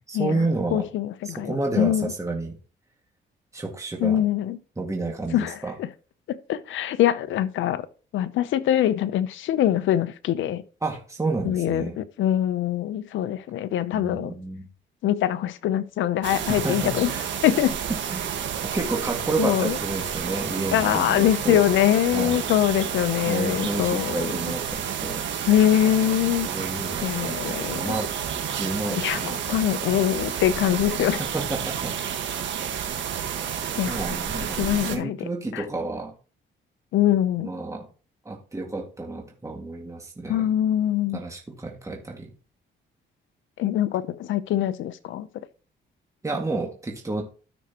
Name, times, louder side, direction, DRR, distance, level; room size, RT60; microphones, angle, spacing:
voice 1, 0.1-0.9 1.2-2.6 3.5-4.2 4.8-5.7 10.8-12.0 13.9-14.7 16.5-17.2 18.1-18.3 18.7-21.6 22.1-22.5 23.3-25.3 26.2-28.1 28.5-30.0 31.2-31.9 33.9-36.1 37.4-37.9 38.3-40.5 41.1-42.3 46.2-47.2, right 3 dB, 15° right, 2.1 m, -30 dB
voice 2, 0.7-2.1 4.0-4.6 5.3-5.9 6.3-7.9 8.1-10.6 11.4-14.3 15.0-17.1 17.4-17.8 19.4-19.8 20.7-24.3 25.5-26.5 27.0-28.0 28.9-31.2 33.8-34.0 34.5-35.2 35.5-35.6 36.9-37.5 40.3-41.2 43.6-45.3, left 11 dB, 80° left, 0.7 m, -23 dB
sound 1, 16.2-35.0, right 8 dB, 70° right, 1.6 m, -30 dB
13.0 x 6.2 x 3.0 m
cardioid pair, 90°, 20 cm